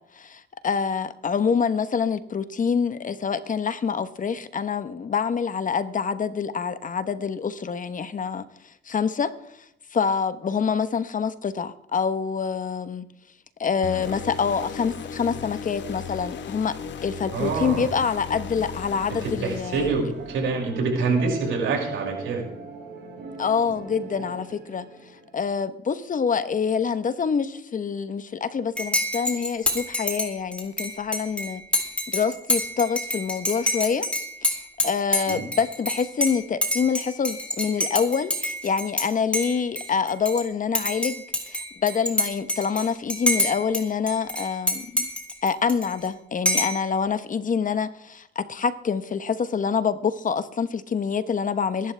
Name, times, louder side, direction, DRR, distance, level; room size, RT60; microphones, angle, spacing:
voice 1, 0.1-8.4 8.8-9.6 9.9-13.0 13.6-16.8 17.0-19.9 23.4-24.8 25.3-31.6 32.1-34.1 34.4-45.1 45.4-51.9, left 6 dB, 40° left, 1.0 m, -26 dB
sound 1, 13.8-20.3, left 6 dB, 65° left, 1.2 m, -36 dB
voice 2, 17.3-17.9 19.1-22.4 35.3-35.4, right 4 dB, 80° right, 6.0 m, -26 dB
sound 2, 19.7-25.3, right 3 dB, 60° right, 5.7 m, -39 dB
Dishes pots and pans / Cutlery silverware / Chink clink, 28.8-39.1 39.3-40.4 40.7-43.8 44.1-46.1 46.5-46.8, left 1 dB, 5° left, 3.7 m, -27 dB
23.0 x 11.5 x 3.4 m
cardioid pair, 90°, 20 cm